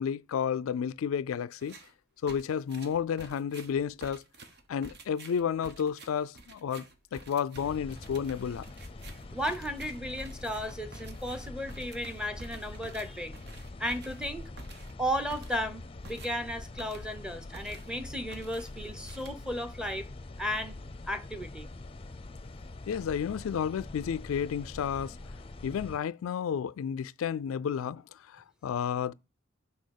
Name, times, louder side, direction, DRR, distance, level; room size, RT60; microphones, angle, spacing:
voice 1, 0.0-1.8 2.2-4.2 4.7-6.9 7.1-8.7 22.9-25.2 25.6-29.1, left 7 dB, 80° left, 0.3 m, -31 dB
sound 1, 1.6-1.9 2.3-17.3 17.5-18.0 18.3-19.7, right 3 dB, 55° right, 1.1 m, -50 dB
sound 2, 7.5-26.0, left 2 dB, 30° left, 0.6 m, -44 dB
voice 2, 9.3-13.4 13.8-14.5 15.0-20.1 20.4-20.8 21.1-21.7, equal, 5° right, 0.8 m, -34 dB
6.3 x 5.6 x 6.4 m
head